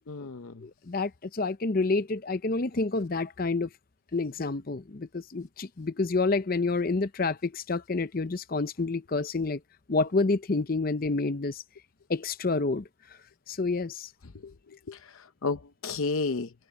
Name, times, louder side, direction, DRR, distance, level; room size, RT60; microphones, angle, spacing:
voice 1, 0.1-0.6 14.4-16.5, left 4 dB, 90° left, 0.8 m, -33 dB
voice 2, 0.6-3.7 4.1-9.6 9.9-11.6 12.1-12.9 13.5-14.1, left 3 dB, 45° left, 0.6 m, -28 dB
head